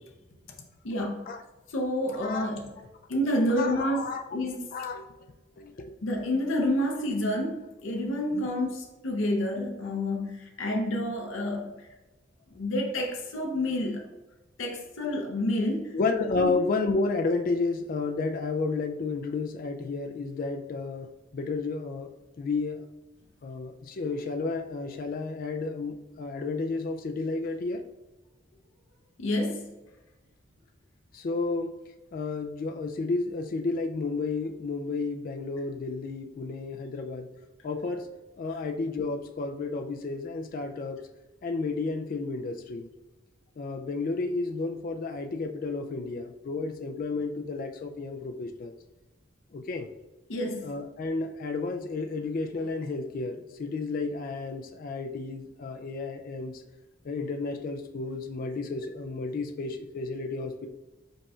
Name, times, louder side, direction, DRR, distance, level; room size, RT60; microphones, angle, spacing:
voice 1, 0.8-1.2 1.7-2.7 3.1-4.7 6.0-11.7 12.5-14.1 14.6-16.0 16.4-16.5 29.2-29.7 50.3-50.7, left 1 dB, 75° left, 2 dB, 0.7 m, -29 dB
voice 2, 3.6-4.2 4.7-5.1 5.6-6.0 8.3-8.4 15.9-22.1 22.4-22.8 23.4-27.8 31.1-31.7 32.1-37.3 37.6-38.1 38.4-41.1 41.4-42.9 43.6-48.7 49.5-49.9 50.6-56.6 57.0-60.7, left 3 dB, 45° left, 5 dB, 0.3 m, -32 dB
5.2 x 4.3 x 2.3 m, 1.1 s
head